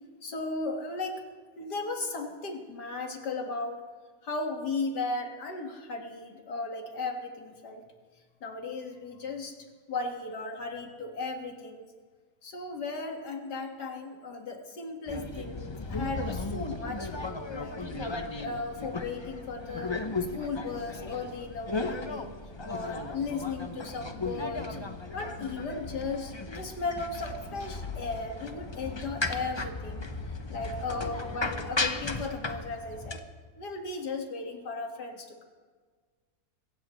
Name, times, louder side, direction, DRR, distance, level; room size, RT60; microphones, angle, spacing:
voice 1, 0.2-1.2 1.6-3.9 4.2-7.8 8.4-9.5 9.9-11.9 12.4-17.8 18.4-19.9 20.3-22.3 22.7-24.7 25.1-30.1 30.5-33.2 33.6-35.4, left 3 dB, 90° left, 3 dB, 2.5 m, -36 dB
sound 1, 15.1-33.2, left 3 dB, 25° left, 0.7 m, -36 dB
25.5 x 15.0 x 3.2 m, 1.5 s
omnidirectional pair, 1.7 m